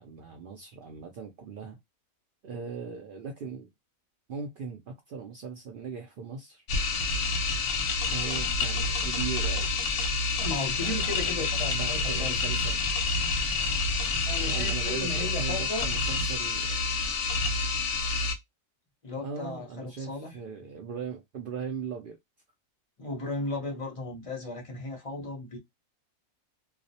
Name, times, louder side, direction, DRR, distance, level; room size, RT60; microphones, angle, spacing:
voice 1, 0.0-1.8 2.4-3.7 4.3-6.6 8.1-9.8 10.8-11.5 11.8-12.8 14.4-16.9 19.2-22.2, right 6 dB, 75° right, 0.5 m, -39 dB
sound 1, 6.7-18.3, left 3 dB, 65° left, 0.8 m, -28 dB
voice 2, 10.4-12.4 14.3-15.9 19.0-20.3 23.0-25.6, left 3 dB, 35° left, 0.6 m, -35 dB
2.3 x 2.0 x 2.6 m
omnidirectional pair, 1.4 m